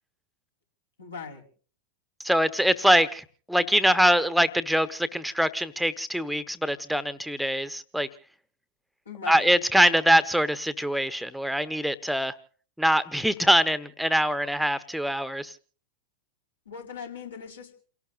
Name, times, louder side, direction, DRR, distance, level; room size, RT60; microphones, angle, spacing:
voice 1, 1.0-1.4 9.0-9.5 16.6-17.8, left 5 dB, 75° left, 0 dB, 4.8 m, -39 dB
voice 2, 2.2-8.1 9.3-12.3 12.8-15.5, equal, ahead, 15 dB, 1.2 m, -23 dB
29.0 x 17.5 x 2.6 m, 0.41 s
figure-of-eight pair, 90°, 0 cm